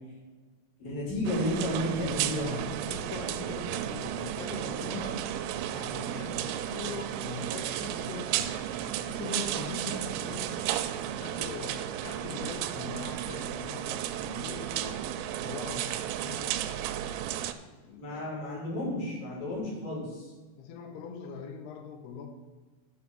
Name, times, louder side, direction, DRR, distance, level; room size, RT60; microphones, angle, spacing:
voice 1, 0.8-2.5 4.8-5.1 18.0-20.3, left 1 dB, 55° left, -3 dB, 4.0 m, -32 dB
sound 1, 1.3-17.5, right 11 dB, 90° right, 2.8 m, -33 dB
voice 2, 2.4-5.2 5.7-10.7 11.1-15.0 15.4-15.9 16.2-16.6 17.8-18.3 20.6-22.3, left 5 dB, 75° left, 5 dB, 2.8 m, -42 dB
12.0 x 4.1 x 6.0 m, 1.3 s
omnidirectional pair, 5.0 m